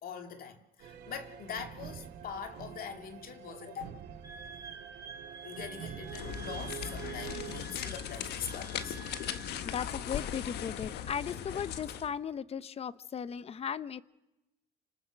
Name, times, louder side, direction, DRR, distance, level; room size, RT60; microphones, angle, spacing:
voice 1, 0.0-3.9 5.4-9.0, left 7 dB, 60° left, 2.6 m, -43 dB
sound 1, 0.8-7.6, right 10 dB, 80° right, 3.3 m, -46 dB
Wind instrument woodwind instrument, 4.2-9.5, right 4 dB, 20° right, 5.1 m, -49 dB
sound 2, 6.1-12.1, left 9 dB, 75° left, 1.4 m, -39 dB
voice 2, 9.6-14.0, left 7 dB, 35° left, 0.8 m, -37 dB
29.5 x 26.0 x 6.5 m
cardioid pair, 120°, 17 cm